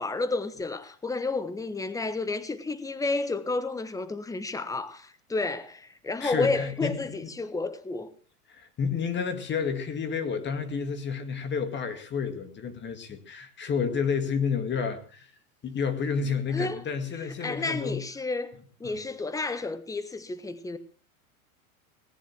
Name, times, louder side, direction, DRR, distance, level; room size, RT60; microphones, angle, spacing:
voice 1, 0.0-8.1 16.5-16.8 17.4-18.5 18.8-20.8, left 3 dB, 10° left, 1.3 m, -31 dB
voice 2, 6.2-7.1 8.5-15.3 15.6-18.0 18.8-18.9, left 6 dB, 25° left, 2.1 m, -30 dB
18.5 x 10.0 x 6.0 m
hypercardioid pair, 115°, 42 cm